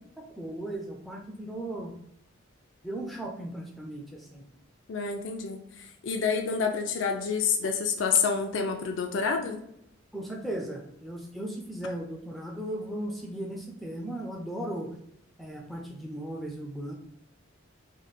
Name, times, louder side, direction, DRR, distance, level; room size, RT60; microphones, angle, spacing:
voice 1, 0.2-1.9 2.8-4.5 10.1-14.9 15.4-16.9, right 1 dB, ahead, 0 dB, 0.4 m, -37 dB
voice 2, 4.9-9.6, left 5 dB, 70° left, 4 dB, 0.4 m, -28 dB
3.1 x 2.2 x 4.0 m, 0.76 s
head